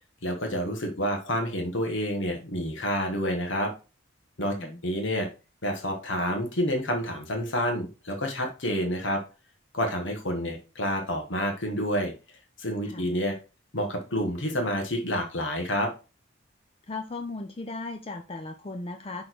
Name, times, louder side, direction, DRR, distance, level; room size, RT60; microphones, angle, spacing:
voice 1, 0.2-3.7 4.4-4.5 4.8-5.3 5.6-9.2 9.7-12.1 12.6-13.4 13.7-15.9, equal, 75° left, 3 dB, 1.5 m, -28 dB
voice 2, 4.4-4.8 12.8-13.1 16.9-19.2, left 3 dB, 30° left, 6 dB, 0.5 m, -37 dB
6.1 x 3.7 x 4.6 m, 0.31 s
head